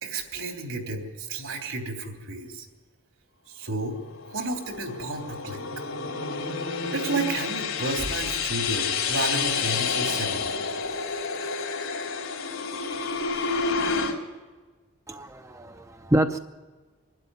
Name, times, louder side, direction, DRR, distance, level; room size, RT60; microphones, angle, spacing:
voice 1, 0.0-2.6 3.5-4.0 4.3-5.8 6.9-10.5, right 2 dB, 80° right, 3 dB, 3.3 m, -32 dB
sound 1, 4.0-14.1, left 5 dB, 85° left, 3.2 m, -29 dB
voice 2, 15.1-16.4, right 1 dB, 15° right, 7 dB, 0.5 m, -26 dB
24.0 x 12.0 x 9.7 m, 1.4 s
head